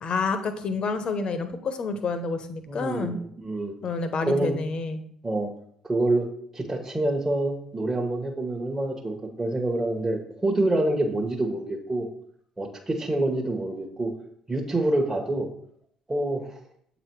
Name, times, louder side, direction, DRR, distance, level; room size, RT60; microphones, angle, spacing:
voice 1, 0.0-3.2 3.8-5.0, left 4 dB, 45° left, 9 dB, 0.9 m, -29 dB
voice 2, 2.7-3.7 4.3-4.6 5.2-5.5 5.8-6.3 6.5-12.1 12.6-14.1 14.5-15.5 16.1-16.5, right 2 dB, 20° right, -1 dB, 1.1 m, -26 dB
7.6 x 4.1 x 4.6 m, 0.67 s
hypercardioid pair, 55°, 2 cm